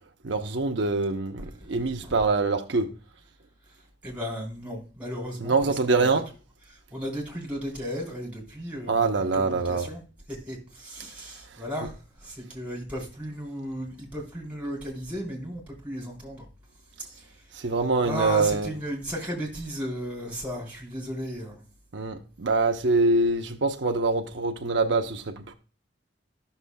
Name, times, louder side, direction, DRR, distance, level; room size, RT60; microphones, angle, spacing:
voice 1, 0.2-2.9 5.4-6.3 8.9-9.9 17.5-18.7 21.9-25.5, right 3 dB, 85° right, 0.8 m, -24 dB
voice 2, 4.0-6.2 6.7-10.0 10.3-16.5 17.0-17.3 18.0-21.6, equal, 10° right, 3.8 m, -35 dB
12.5 x 6.8 x 2.2 m
head